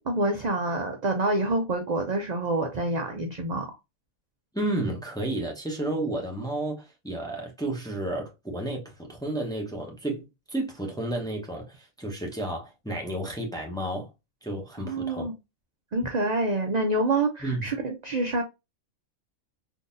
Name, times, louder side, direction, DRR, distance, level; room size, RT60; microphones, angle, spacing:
voice 1, 0.1-3.7 14.8-15.3 15.9-18.4, right 2 dB, 50° right, 0.5 m, -27 dB
voice 2, 4.5-14.1 14.4-15.3 17.4-17.7, right 1 dB, 5° left, 0.7 m, -32 dB
3.8 x 2.7 x 2.5 m
omnidirectional pair, 1.4 m